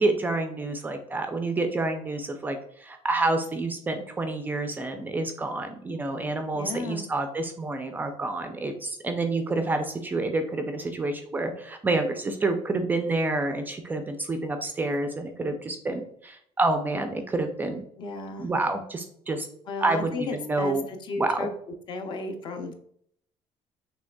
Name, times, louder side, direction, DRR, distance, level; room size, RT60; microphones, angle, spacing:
voice 1, 0.0-17.8 18.4-19.5 19.8-20.9 21.2-21.5, right 2 dB, 15° right, 6 dB, 0.3 m, -28 dB
voice 2, 6.5-7.0 18.0-18.5 19.7-21.5 21.9-22.7, left 3 dB, 40° left, 6 dB, 0.5 m, -34 dB
6.1 x 3.2 x 2.2 m, 0.66 s
cardioid pair, 170°, 12 cm